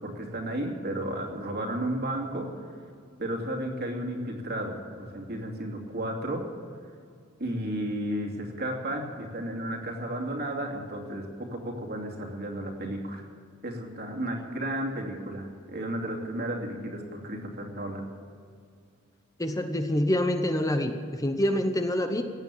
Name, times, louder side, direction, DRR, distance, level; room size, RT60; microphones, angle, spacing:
voice 1, 0.0-2.5 3.2-6.4 7.4-13.3 13.6-18.1, right 1 dB, 50° right, 1 dB, 2.6 m, -33 dB
voice 2, 19.4-22.2, left 1 dB, 15° left, 7 dB, 0.8 m, -26 dB
17.0 x 9.0 x 9.0 m, 2.3 s
head